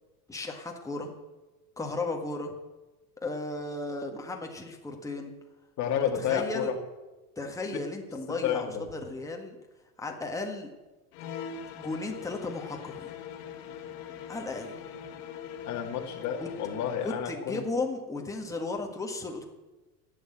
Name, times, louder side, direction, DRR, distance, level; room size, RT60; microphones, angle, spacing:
voice 1, 0.3-1.1 1.8-2.6 3.2-5.3 6.0-6.7 7.4-9.6 10.0-10.7 11.7-13.1 14.3-14.8 16.4-16.5 17.0-19.5, left 2 dB, 5° left, 1 dB, 1.6 m, -35 dB
voice 2, 5.8-6.7 8.4-8.8 15.7-17.6, left 8 dB, 35° left, 3 dB, 2.1 m, -30 dB
sound 1, 11.1-17.3, left 8 dB, 65° left, 1.6 m, -42 dB
11.5 x 8.2 x 7.9 m, 1.1 s
supercardioid pair, 145°, 48 cm